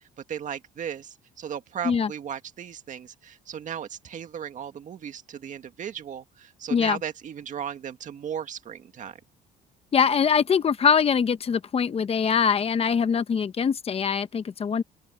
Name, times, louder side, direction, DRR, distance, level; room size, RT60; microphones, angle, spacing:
voice 1, 0.0-9.2, right 8 dB, 50° right, 1.9 m, -36 dB
voice 2, 9.9-14.8, left 6 dB, 35° left, 1.0 m, -23 dB
open air
cardioid pair, 110°, 17 cm